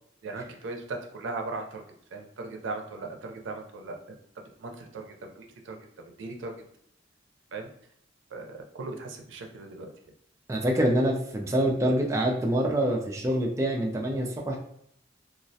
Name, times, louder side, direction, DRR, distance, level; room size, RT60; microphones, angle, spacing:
voice 1, 0.2-1.8 2.1-4.0 4.6-5.8 6.2-6.5 7.5-7.7 8.3-9.9, right 3 dB, 90° right, 3 dB, 0.4 m, -38 dB
voice 2, 10.5-14.6, right 1 dB, 15° right, 0 dB, 0.3 m, -26 dB
2.3 x 2.1 x 2.6 m, 0.71 s
head